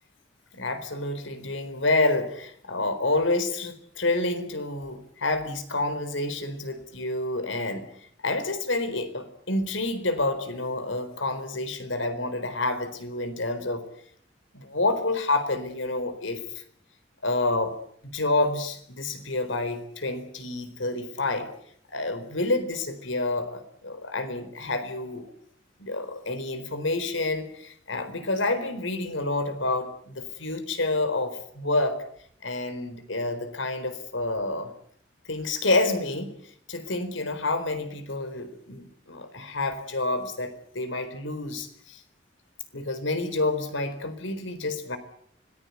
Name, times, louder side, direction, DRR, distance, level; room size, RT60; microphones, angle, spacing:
voice 1, 0.5-7.9 8.2-13.9 14.5-16.6 17.2-17.7 18.0-21.5 21.9-25.2 25.8-32.0 32.4-34.7 35.3-36.4 36.7-42.0 42.7-45.0, left 2 dB, 80° left, 11 dB, 4.1 m, -28 dB
25.5 x 19.5 x 8.3 m, 0.66 s
head